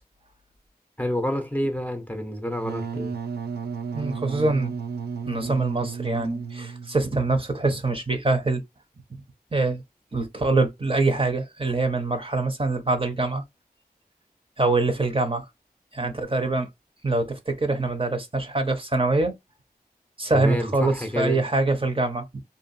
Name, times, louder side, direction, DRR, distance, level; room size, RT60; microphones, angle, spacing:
voice 1, 1.0-3.2 20.3-21.5, left 1 dB, 10° left, 0.7 m, -28 dB
Wind instrument woodwind instrument, 2.6-7.1, right 5 dB, 85° right, 0.4 m, -33 dB
voice 2, 3.9-4.7 5.3-8.6 9.5-9.8 10.1-13.4 14.6-15.5 15.9-16.7 17.0-19.3 20.2-22.4, right 3 dB, 35° right, 0.8 m, -24 dB
2.7 x 2.5 x 2.5 m
wide cardioid pair, 50°, 16 cm